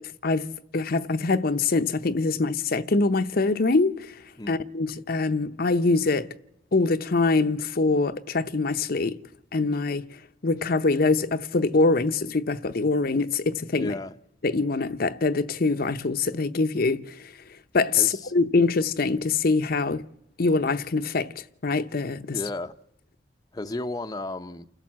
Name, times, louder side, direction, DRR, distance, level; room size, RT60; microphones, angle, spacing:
voice 1, 0.2-4.1 4.5-6.3 6.7-9.2 9.5-10.1 10.4-13.9 14.4-17.3 17.7-20.1 20.4-21.3 21.6-22.4, left 3 dB, 55° left, 0.7 m, -24 dB
voice 2, 13.8-14.2 18.0-18.3 22.3-22.7 23.5-24.7, left 2 dB, 20° left, 0.7 m, -33 dB
29.0 x 12.0 x 7.4 m
head